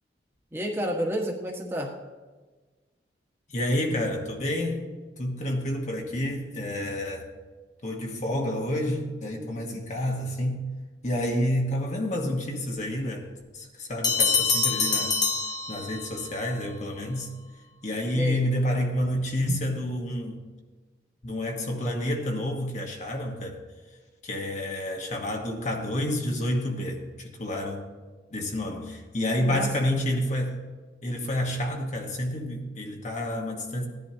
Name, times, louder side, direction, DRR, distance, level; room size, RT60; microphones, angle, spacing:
voice 1, 0.5-1.9 9.4-9.8 18.1-18.4 29.4-29.7, equal, 15° right, 0 dB, 1.5 m, -31 dB
voice 2, 3.5-4.9 5.2-7.3 7.8-10.7 11.0-13.3 13.5-15.2 15.7-17.3 17.8-20.4 21.2-23.6 24.2-27.9 28.3-30.6 31.0-33.9, left 1 dB, 40° left, 1 dB, 1.3 m, -29 dB
Bell, 14.0-16.3, left 4 dB, 25° left, 0.8 m, -25 dB
17.0 x 10.5 x 2.9 m, 1.3 s
head